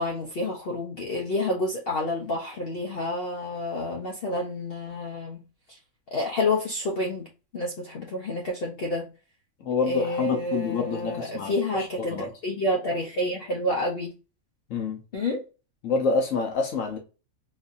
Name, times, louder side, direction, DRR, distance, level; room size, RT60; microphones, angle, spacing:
voice 1, 0.0-5.4 5.7-5.8 6.1-7.3 7.5-9.1 9.8-14.1 15.1-15.4, left 1 dB, 50° left, 0.8 m, -29 dB
voice 2, 9.6-12.3 14.7-15.0 15.8-17.0, left 4 dB, 70° left, 1.2 m, -27 dB
3.9 x 2.7 x 2.4 m
omnidirectional pair, 1.4 m